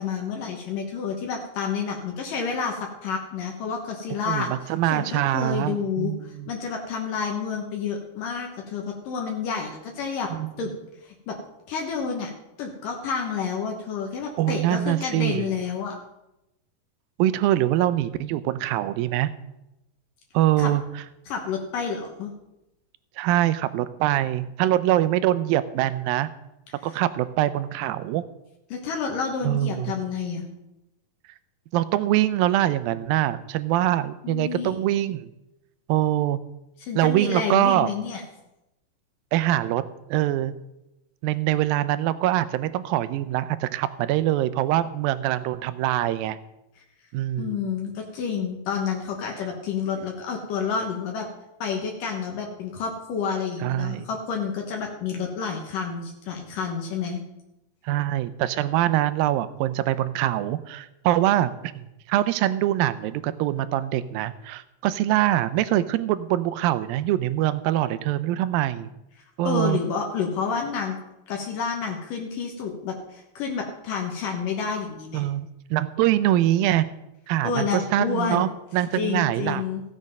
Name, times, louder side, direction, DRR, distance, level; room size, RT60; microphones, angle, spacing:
voice 1, 0.0-4.5 4.9-6.1 6.5-10.3 10.6-10.7 11.0-11.4 11.7-12.3 12.6-16.0 20.6-20.7 21.3-22.3 26.8-26.9 28.7-30.5 34.2-34.8 36.8-38.2 47.4-51.3 51.6-57.2 69.4-71.0 71.3-75.3 77.4-78.5 78.9-79.8, left 6 dB, 70° left, 1 dB, 2.7 m, -29 dB
voice 2, 4.3-6.5 10.3-10.5 14.4-15.5 17.2-19.3 20.3-20.8 23.2-26.3 26.8-28.2 29.4-30.0 31.7-35.3 35.9-36.4 37.0-37.9 39.3-39.8 40.1-40.5 41.2-46.4 47.1-47.6 53.6-54.1 57.9-68.9 69.4-69.8 75.1-75.5 75.7-76.9 77.3-79.6, right 13 dB, 85° right, 14 dB, 2.4 m, -24 dB
15.5 x 7.4 x 5.4 m, 0.91 s
omnidirectional pair, 4.1 m